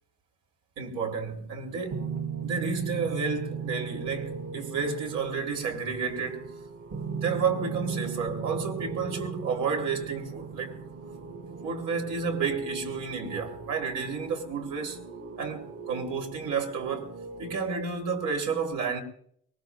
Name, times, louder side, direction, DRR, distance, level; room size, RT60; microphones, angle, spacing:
voice 1, 0.8-2.1 2.4-6.5 7.1-10.8 11.6-15.0 15.4-17.1 17.4-19.0, right 5 dB, 80° right, 3.2 m, -31 dB
sound 1, 1.9-17.6, right 5 dB, 60° right, 2.7 m, -38 dB
23.5 x 21.0 x 2.3 m
cardioid pair, 90°, 30 cm